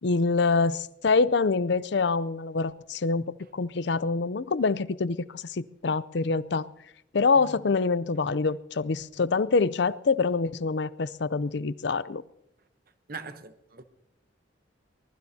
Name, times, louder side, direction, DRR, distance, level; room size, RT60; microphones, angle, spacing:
voice 1, 0.0-6.7 7.1-12.2, left 4 dB, 60° left, 0.5 m, -25 dB
voice 2, 13.1-13.8, right 4 dB, 50° right, 0.9 m, -41 dB
24.0 x 20.0 x 2.8 m
head